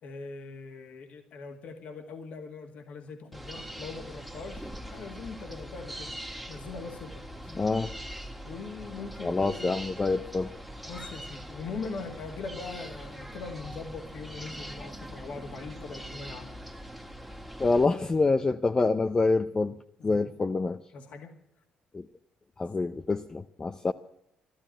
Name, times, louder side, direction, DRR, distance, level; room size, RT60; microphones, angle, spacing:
voice 1, 0.0-6.1 6.5-7.6 8.5-9.7 10.8-16.6 20.0-20.6 20.9-21.4, left 4 dB, 65° left, 4 dB, 1.9 m, -41 dB
sound 1, 3.3-17.8, equal, ahead, 1.6 m, -42 dB
voice 2, 7.5-7.9 9.2-10.5 17.6-19.8 20.0-20.8 21.9-22.1 22.6-23.9, left 3 dB, 30° left, 7 dB, 0.6 m, -26 dB
12.5 x 12.0 x 9.0 m, 0.78 s
supercardioid pair, 70°, 2 cm